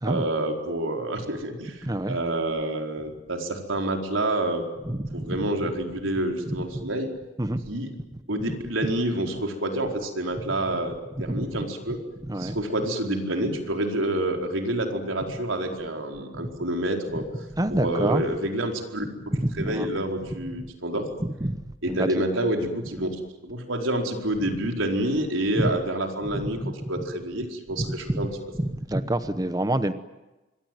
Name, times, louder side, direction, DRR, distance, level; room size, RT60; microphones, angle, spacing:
voice 1, 0.0-7.1 7.7-7.9 8.3-12.0 12.4-17.3 17.7-19.1 19.5-21.1 21.8-26.6 26.9-28.3, right 1 dB, 90° right, 3 dB, 4.6 m, -28 dB
voice 2, 1.8-2.2 4.9-5.5 6.5-6.8 7.4-7.6 11.3-11.4 12.3-12.6 17.6-18.2 19.3-19.9 21.2-21.6 21.9-22.3 25.6-25.8 26.3-26.7 27.8-28.2 28.6-29.9, right 1 dB, 20° right, 11 dB, 0.9 m, -27 dB
26.0 x 22.5 x 9.3 m, 1.1 s
head